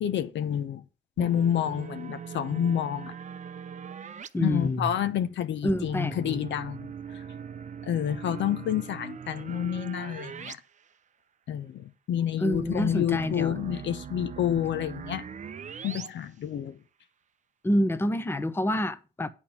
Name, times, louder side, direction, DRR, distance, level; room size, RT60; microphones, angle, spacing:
voice 1, 0.0-0.8 1.2-3.1 4.4-6.9 7.9-10.6 11.5-15.2 15.8-16.8, left 10 dB, 70° left, 0.8 m, -29 dB
sound 1, 1.2-4.3 5.7-10.5 10.9-11.0 12.5-16.1, right 7 dB, 40° right, 0.6 m, -40 dB
voice 2, 4.3-4.9 5.6-6.4 12.4-13.6 17.6-19.3, left 1 dB, 10° left, 0.8 m, -27 dB
8.8 x 4.5 x 7.0 m
cardioid pair, 90°, 20 cm